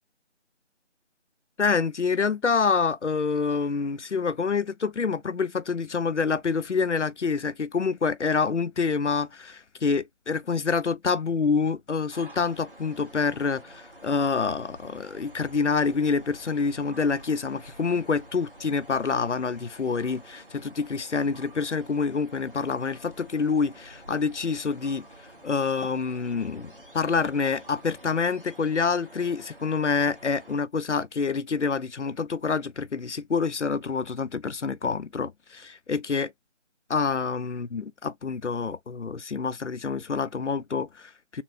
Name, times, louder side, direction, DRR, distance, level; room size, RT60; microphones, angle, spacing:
voice 1, 1.6-25.1 25.4-36.3 36.9-41.4, left 5 dB, 75° left, 0.6 m, -27 dB
sound 1, 12.1-30.6, right 1 dB, 50° right, 1.2 m, -49 dB
4.3 x 2.5 x 2.6 m
figure-of-eight pair, 180°, 36 cm